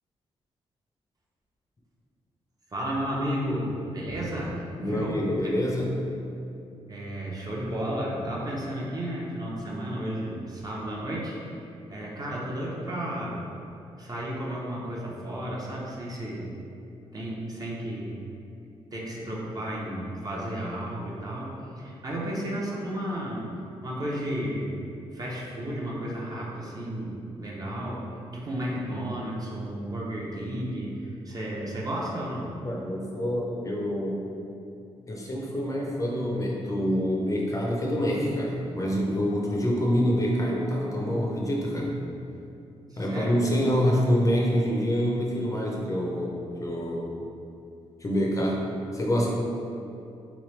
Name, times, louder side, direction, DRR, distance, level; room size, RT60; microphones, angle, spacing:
voice 1, 2.7-5.2 5.9-6.0 6.9-13.4 14.0-16.5 17.1-18.2 18.9-23.5 23.8-24.7 25.1-28.1 28.3-32.5 42.9-43.4, right 1 dB, 35° right, -4 dB, 0.7 m, -33 dB
voice 2, 4.8-6.0 32.6-34.3 35.1-41.9 43.0-47.1 48.0-49.3, equal, 30° left, -2 dB, 0.6 m, -26 dB
3.2 x 3.1 x 3.1 m, 2.7 s
cardioid pair, 90°, 11 cm